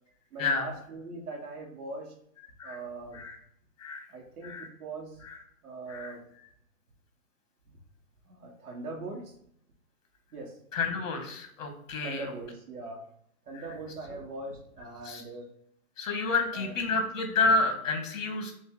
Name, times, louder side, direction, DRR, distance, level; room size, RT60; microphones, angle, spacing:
voice 1, 0.3-2.1 2.6-3.2 4.1-5.2 5.6-6.2 8.2-9.3 10.3-10.6 12.0-13.0 13.4-15.5 16.5-16.7, right 2 dB, 85° right, 0 dB, 1.3 m, -41 dB
voice 2, 10.7-12.3 13.5-13.6 15.0-15.2 16.0-18.5, left 3 dB, 60° left, 5 dB, 1.1 m, -29 dB
3.3 x 2.6 x 3.6 m, 0.70 s
hypercardioid pair, 155°, 44 cm